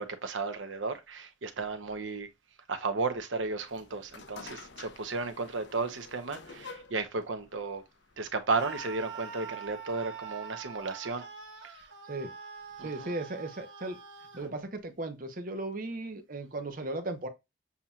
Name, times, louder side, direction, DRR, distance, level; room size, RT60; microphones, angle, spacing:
voice 1, 0.0-2.3 2.7-7.8 8.2-11.2 11.6-11.9 12.8-13.1, right 3 dB, 85° right, 0.8 m, -34 dB
sound 1, 3.6-8.9, left 4 dB, 70° left, 0.7 m, -50 dB
Screaming, 8.5-14.5, right 7 dB, 70° right, 1.2 m, -44 dB
voice 2, 12.8-14.0 14.3-17.3, right 2 dB, 45° right, 0.9 m, -36 dB
7.1 x 2.9 x 2.3 m
head